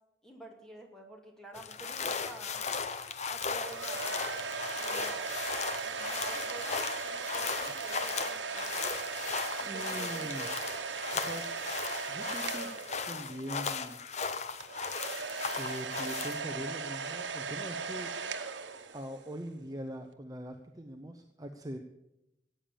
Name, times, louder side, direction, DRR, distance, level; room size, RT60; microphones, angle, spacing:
voice 1, 0.2-2.8 3.3-4.4 4.7-5.4 5.8-9.1 9.6-10.6, right 1 dB, 5° left, 0 dB, 2.3 m, -49 dB
sound 1, 1.5-16.4, left 5 dB, 40° left, 0.8 m, -37 dB
sound 2, 3.4-13.5 14.6-19.3, right 5 dB, 90° right, 1.1 m, -38 dB
voice 2, 9.6-10.5 11.1-11.4 11.7-12.7 13.0-14.0 15.5-18.1 18.9-21.8, equal, 20° right, 5 dB, 0.7 m, -42 dB
14.5 x 8.9 x 6.9 m, 0.90 s
head